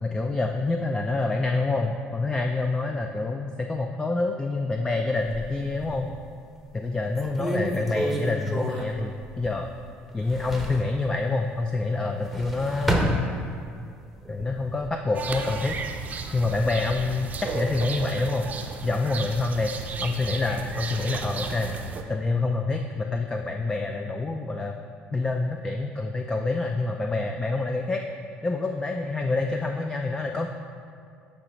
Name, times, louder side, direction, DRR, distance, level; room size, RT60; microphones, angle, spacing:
voice 1, 0.0-6.1 6.7-9.7 10.1-13.2 14.3-15.8 16.3-18.5 18.8-21.7 22.1-24.8 25.1-28.0 28.4-30.5, left 3 dB, 15° left, 4 dB, 0.3 m, -27 dB
sound 1, 5.2-6.2 6.7-6.8 7.1-9.8 10.1-10.9 12.0-13.8 14.2-14.9, right 1 dB, ahead, 0.8 m, -30 dB
sound 2, 15.1-22.0, right 4 dB, 40° right, 0.5 m, -34 dB
8.6 x 3.0 x 5.2 m, 2.3 s
cardioid pair, 105°, 4 cm